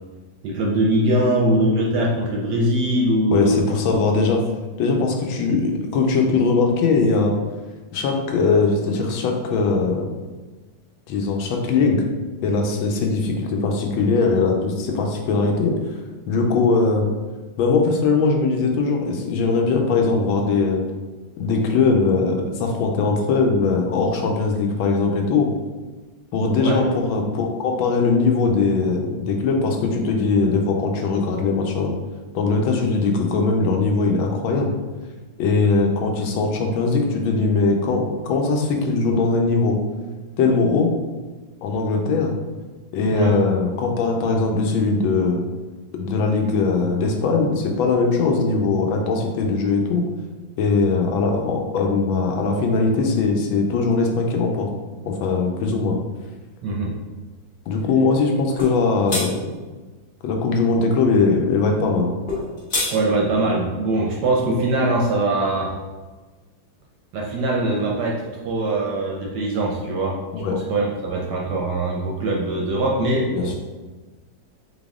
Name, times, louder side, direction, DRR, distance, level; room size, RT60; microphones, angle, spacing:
voice 1, 0.4-3.5 3.9-4.0 26.6-26.8 43.1-43.3 56.6-57.0 62.9-65.7 67.1-70.2 70.5-73.6, right 1 dB, 70° right, -1 dB, 1.0 m, -22 dB
voice 2, 3.3-4.4 4.8-7.3 7.9-10.2 11.1-12.0 12.4-15.7 16.3-17.1 17.6-20.8 21.4-25.5 26.3-31.9 32.3-34.7 35.4-39.8 40.4-40.9 41.6-42.3 42.9-45.4 45.9-50.0 50.6-54.7 55.0-56.0 57.7-59.4 60.2-62.1 70.3-70.6 73.3-73.6, left 4 dB, 80° left, 2 dB, 1.4 m, -20 dB
sound 1, 58.6-58.8 59.1-59.3 62.3-62.9, left 2 dB, 35° left, 0.8 m, -24 dB
4.0 x 3.5 x 3.6 m, 1.3 s
omnidirectional pair, 2.2 m